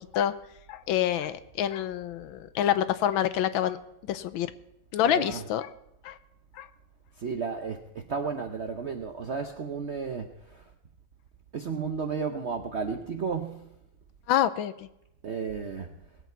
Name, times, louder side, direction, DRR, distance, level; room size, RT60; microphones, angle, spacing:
voice 1, 0.7-3.8 4.0-4.5 4.9-5.7 6.0-6.2 6.5-6.7 14.3-14.7, left 11 dB, 85° left, 13 dB, 1.4 m, -27 dB
voice 2, 5.0-5.5 7.2-10.7 11.5-13.7 15.2-15.9, right 5 dB, 65° right, 5 dB, 0.6 m, -33 dB
20.0 x 8.2 x 4.5 m, 0.83 s
omnidirectional pair, 2.2 m